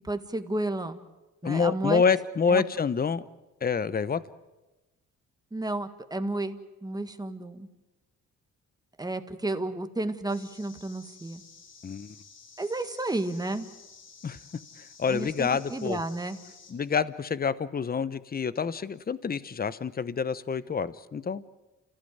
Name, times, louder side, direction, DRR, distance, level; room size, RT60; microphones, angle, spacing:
voice 1, 0.0-1.0 1.4-2.0 2.5-2.6 5.5-7.7 9.0-11.4 12.6-13.7 15.1-16.4, right 2 dB, 15° right, 8 dB, 1.7 m, -32 dB
voice 2, 1.4-3.2 3.6-4.2 11.8-12.2 14.2-14.4 14.8-16.0 16.7-21.5, left 6 dB, 30° left, 16 dB, 0.9 m, -27 dB
sound 1, 10.3-16.7, left 5 dB, 60° left, 7.9 m, -52 dB
29.5 x 15.5 x 9.4 m, 1.1 s
cardioid pair, 90°, 30 cm